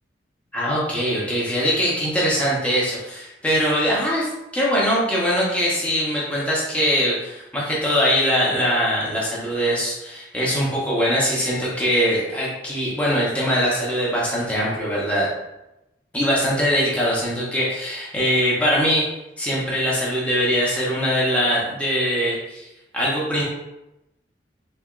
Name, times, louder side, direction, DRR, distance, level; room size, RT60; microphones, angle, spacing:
voice 1, 0.5-15.3 16.1-19.1 19.4-22.7 22.9-23.4, equal, 5° left, -6 dB, 0.8 m, -22 dB
3.5 x 3.3 x 2.4 m, 0.92 s
head